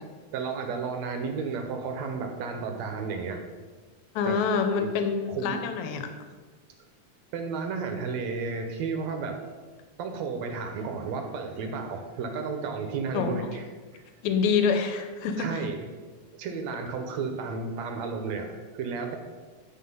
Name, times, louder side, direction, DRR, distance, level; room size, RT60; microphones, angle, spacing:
voice 1, 0.3-3.4 4.3-4.4 4.8-4.9 5.3-5.6 7.3-9.4 10.0-13.6 13.9-14.0 15.4-15.9 16.4-19.2, right 5 dB, 75° right, 5 dB, 2.0 m, -32 dB
voice 2, 4.2-6.0 13.1-13.4 14.2-15.6, left 6 dB, 80° left, 7 dB, 2.1 m, -26 dB
10.5 x 4.1 x 5.4 m, 1.4 s
omnidirectional pair, 3.3 m